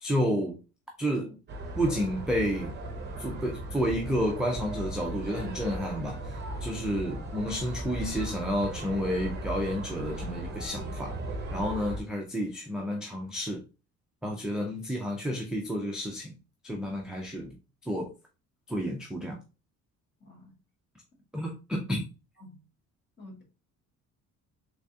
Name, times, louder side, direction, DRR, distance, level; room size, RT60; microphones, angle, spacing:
voice 1, 0.0-0.6 1.0-1.4 1.8-2.7 3.2-11.2 11.5-13.6 14.2-16.3 16.6-17.5 17.9-18.1 18.7-19.4 21.3-22.0, equal, ahead, 0.3 m, -30 dB
sound 1, 1.5-12.0, right 1 dB, 35° right, 0.8 m, -37 dB
voice 2, 20.2-20.6 22.4-22.6 23.2-23.4, left 1 dB, 35° left, 1.4 m, -49 dB
3.3 x 3.3 x 2.7 m
cardioid pair, 160°, 32 cm